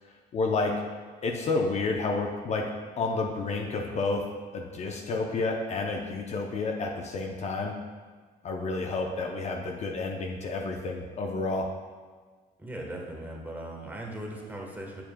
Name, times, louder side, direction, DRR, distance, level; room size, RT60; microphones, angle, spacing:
voice 1, 0.3-0.8 1.2-2.7 3.0-4.3 4.5-7.8 8.4-11.7, left 3 dB, 40° left, 2 dB, 0.6 m, -30 dB
voice 2, 12.6-15.0, right 1 dB, 10° right, -1 dB, 1.2 m, -38 dB
7.4 x 7.0 x 2.2 m, 1.5 s
cardioid pair, 110°, 17 cm